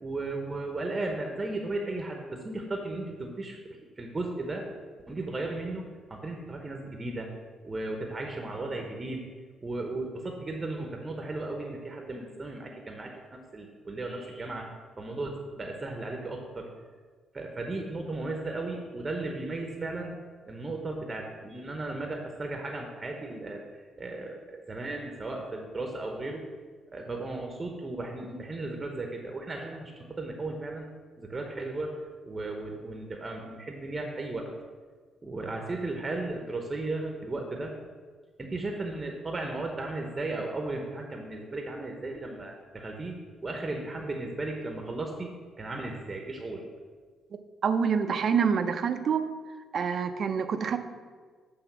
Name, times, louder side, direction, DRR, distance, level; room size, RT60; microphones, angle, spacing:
voice 1, 0.0-4.7 5.1-7.3 7.6-9.2 9.6-16.7 17.3-20.1 20.4-23.6 24.0-26.5 26.9-30.9 31.2-31.9 32.2-34.4 35.2-37.7 38.4-45.3 45.6-46.6, right 2 dB, 25° right, 2 dB, 0.8 m, -35 dB
voice 2, 47.6-49.3 49.7-50.8, right 6 dB, 55° right, 9 dB, 0.5 m, -26 dB
8.0 x 3.5 x 5.9 m, 1.5 s
cardioid pair, 90°, 0 cm